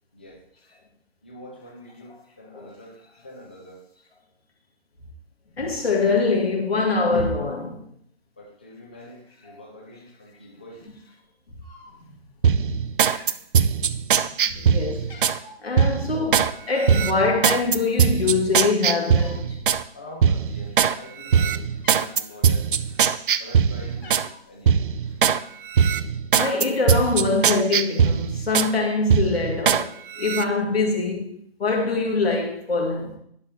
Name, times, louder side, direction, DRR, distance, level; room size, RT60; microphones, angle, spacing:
voice 1, 0.1-0.4 1.2-3.9 8.4-10.9 19.9-22.7 23.4-24.9, left 1 dB, 10° left, 0.3 m, -44 dB
voice 2, 5.6-7.8 12.0-12.1 12.6-12.8 14.1-15.1 15.6-19.6 26.3-31.3 31.6-33.2, left 3 dB, 75° left, 2.2 m, -24 dB
Cat, 11.6-12.2 12.6-12.8 13.0-14.1 14.5-14.7 14.9-15.6 16.8-17.2 18.0-18.1 18.3-19.5 19.8-20.0 20.6-21.0 21.5-21.6 21.8-22.3 22.8-24.4 25.2-25.8 26.1-26.7, left 2 dB, 60° left, 3.1 m, -46 dB
sound 1, 12.4-15.4 15.8-16.5 16.9-19.8 20.2-20.9 21.3-24.3 24.7-25.4 25.7-28.7 29.1-29.8 30.2-30.4, right 7 dB, 55° right, 0.4 m, -21 dB
11.0 x 6.4 x 2.9 m
figure-of-eight pair, 125°, 31 cm